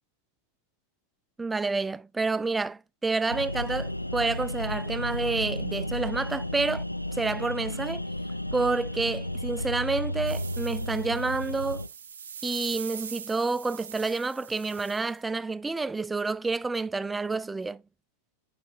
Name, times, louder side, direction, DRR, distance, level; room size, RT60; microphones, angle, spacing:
voice 1, 1.4-6.8 7.1-8.0 8.5-11.8 12.4-17.8, right 3 dB, 10° right, 0.3 m, -29 dB
sound 1, 3.3-11.9, left 1 dB, 85° left, 0.3 m, -33 dB
sound 2, 10.3-15.2, right 7 dB, 70° right, 0.5 m, -42 dB
9.0 x 5.4 x 2.4 m
figure-of-eight pair, 90°, 0 cm